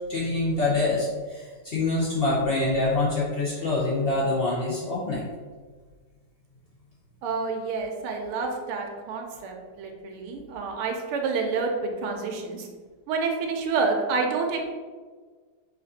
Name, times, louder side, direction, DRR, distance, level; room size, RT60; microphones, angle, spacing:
voice 1, 0.1-5.2, left 2 dB, 75° left, -7 dB, 0.5 m, -25 dB
voice 2, 7.2-12.7 13.1-14.7, right 4 dB, 90° right, 2 dB, 1.6 m, -28 dB
5.2 x 2.5 x 4.0 m, 1.5 s
omnidirectional pair, 2.3 m